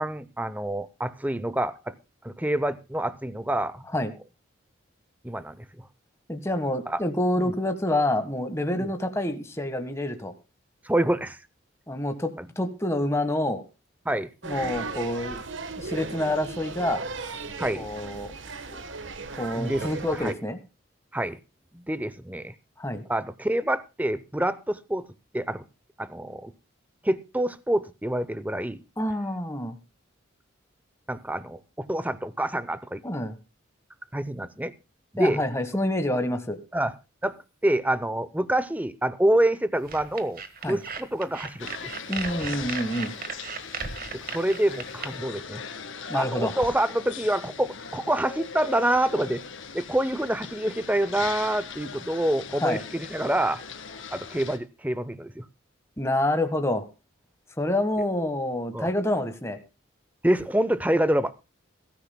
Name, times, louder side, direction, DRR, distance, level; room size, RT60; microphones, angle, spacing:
voice 1, 0.0-1.9 2.2-3.8 5.2-5.9 6.9-7.0 7.4-7.5 8.7-8.9 10.8-11.4 12.4-12.5 14.0-14.3 17.6-17.9 19.5-20.3 21.1-21.4 21.7-22.5 23.1-25.1 25.3-25.6 26.0-26.5 27.0-28.8 31.1-33.0 34.1-34.7 35.1-35.4 36.7-36.9 37.2-41.9 44.1-45.6 46.1-49.4 49.7-53.6 54.1-55.5 58.7-58.9 60.2-61.3, right 1 dB, 10° right, 15 dB, 0.7 m, -27 dB
voice 2, 6.3-10.3 11.9-12.3 12.6-13.6 14.4-15.4 15.8-17.0 17.7-18.3 18.7-18.8 19.4-20.6 22.8-23.0 29.0-29.8 33.0-33.3 35.2-36.6 40.6-40.8 42.1-43.1 46.1-46.6 52.6-52.8 56.0-56.8 57.6-59.6, left 1 dB, 15° left, 8 dB, 1.4 m, -27 dB
sound 1, 14.4-20.3, right 3 dB, 70° right, 1.3 m, -36 dB
sound 2, 39.9-45.1, right 5 dB, 45° right, 1.4 m, -36 dB
sound 3, 41.6-54.6, left 5 dB, 75° left, 2.1 m, -39 dB
22.0 x 14.0 x 2.2 m, 0.29 s
head